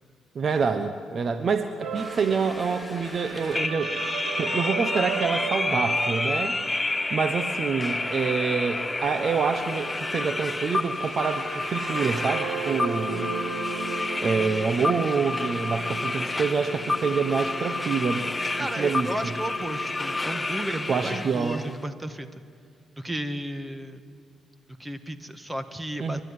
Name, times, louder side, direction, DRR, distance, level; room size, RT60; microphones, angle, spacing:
voice 1, 0.3-3.9 4.4-6.6 7.1-13.3 14.2-18.3 18.6-19.3 20.9-21.7 26.0-26.2, right 5 dB, 50° right, 8 dB, 1.0 m, -27 dB
sound 1, 1.8-21.4, right 6 dB, 80° right, 1.5 m, -38 dB
sound 2, 2.0-21.7, left 2 dB, 15° left, 0.6 m, -30 dB
voice 2, 18.6-22.4 23.0-24.0 24.8-26.2, right 1 dB, 15° right, 10 dB, 1.5 m, -34 dB
29.0 x 12.0 x 9.7 m, 2.2 s
cardioid pair, 90°, 0 cm